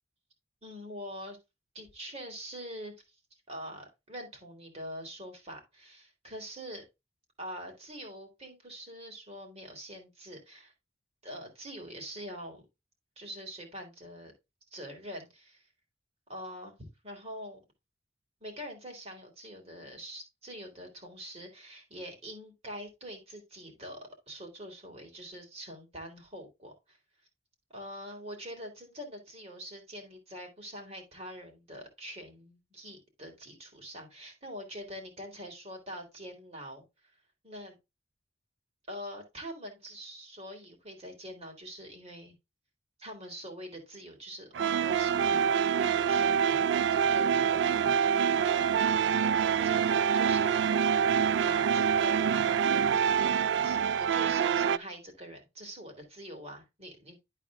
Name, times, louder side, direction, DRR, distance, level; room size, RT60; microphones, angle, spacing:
voice 1, 0.6-1.4 1.7-3.2 3.5-6.8 7.4-10.7 11.2-12.6 13.2-14.3 14.7-15.7 16.3-17.6 18.4-24.0 24.3-27.0 27.7-36.8 37.4-37.8 38.9-42.3 43.0-45.5 45.8-46.6 46.9-48.9 49.3-50.7 51.4-52.5 53.2-57.2, equal, 35° right, 3 dB, 2.9 m, -44 dB
sound 1, 44.5-54.8, right 7 dB, 70° right, 0.3 m, -26 dB
11.5 x 4.2 x 3.5 m, 0.23 s
head